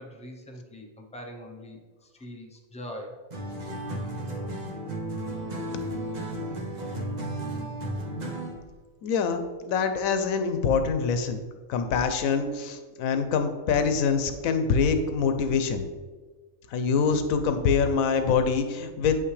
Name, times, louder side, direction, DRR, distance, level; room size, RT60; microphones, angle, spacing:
voice 1, 0.0-3.2, equal, 10° left, 2 dB, 0.3 m, -42 dB
sound 1, 3.3-8.7, right 1 dB, 40° right, 0.8 m, -33 dB
voice 2, 9.0-11.4 11.7-15.8 16.7-19.2, left 5 dB, 80° left, 8 dB, 1.1 m, -25 dB
7.4 x 5.7 x 3.2 m, 1.4 s
omnidirectional pair, 1.4 m